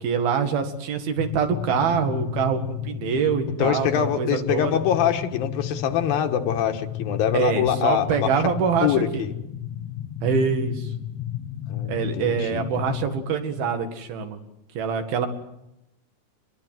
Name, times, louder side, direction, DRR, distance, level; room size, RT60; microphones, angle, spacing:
voice 1, 0.0-4.8 7.3-9.3 10.2-10.9 11.9-14.4 14.8-15.3, right 6 dB, 85° right, 6 dB, 3.9 m, -25 dB
sound 1, 1.2-13.2, left 11 dB, 60° left, 2.1 m, -33 dB
voice 2, 3.6-8.4 8.8-9.3 11.7-12.6, left 9 dB, 80° left, 6 dB, 3.1 m, -24 dB
23.5 x 21.5 x 7.8 m, 0.85 s
omnidirectional pair, 4.2 m